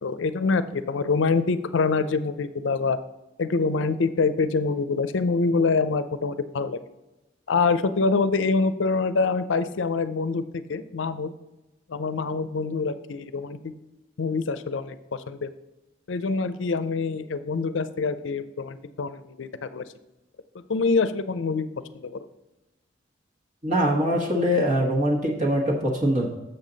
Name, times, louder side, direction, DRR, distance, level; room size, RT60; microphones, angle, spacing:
voice 1, 0.0-3.0 3.4-6.8 7.5-10.4 10.7-11.3 11.9-13.7 14.2-15.5 16.1-19.8 20.5-21.7 21.9-22.3, left 4 dB, 75° left, 13 dB, 0.5 m, -25 dB
voice 2, 23.6-26.3, equal, 40° right, -2 dB, 1.2 m, -23 dB
7.4 x 6.7 x 3.9 m, 1.0 s
head